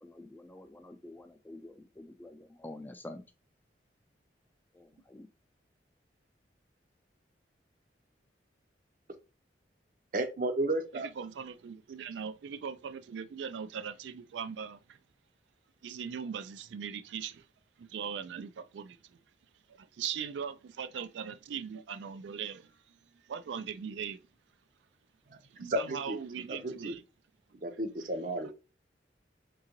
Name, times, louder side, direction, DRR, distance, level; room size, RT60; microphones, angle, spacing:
voice 1, 0.0-3.2 4.7-5.3, left 1 dB, 10° left, 0.3 m, -48 dB
voice 2, 10.1-11.1 25.6-26.2 26.5-26.9 27.6-28.5, right 1 dB, 50° right, 0.6 m, -33 dB
voice 3, 10.9-15.0 15.8-17.5 17.8-19.2 19.7-23.0 23.2-24.2 25.5-27.0, right 7 dB, 80° right, 0.3 m, -40 dB
3.8 x 3.7 x 2.9 m
head